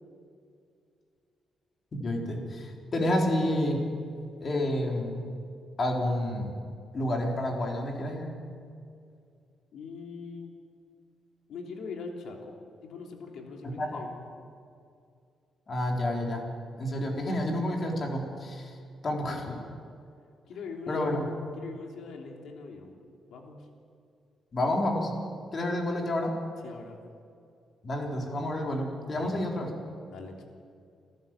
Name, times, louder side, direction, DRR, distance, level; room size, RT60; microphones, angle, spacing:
voice 1, 1.9-3.8 4.4-5.3 5.8-6.5 6.9-8.3 13.6-14.0 15.7-16.5 16.8-18.8 19.0-19.5 20.9-21.3 24.5-25.1 25.5-26.3 27.8-29.7, left 1 dB, 35° left, 0 dB, 3.9 m, -29 dB
voice 2, 9.7-10.5 11.5-12.5 12.8-14.2 19.2-19.6 20.5-21.2 21.5-23.0 23.3-23.7 26.6-27.0 29.1-29.7 30.1-30.4, left 4 dB, 75° left, 1 dB, 3.3 m, -42 dB
30.0 x 12.5 x 7.5 m, 2.4 s
cardioid pair, 130°, 0 cm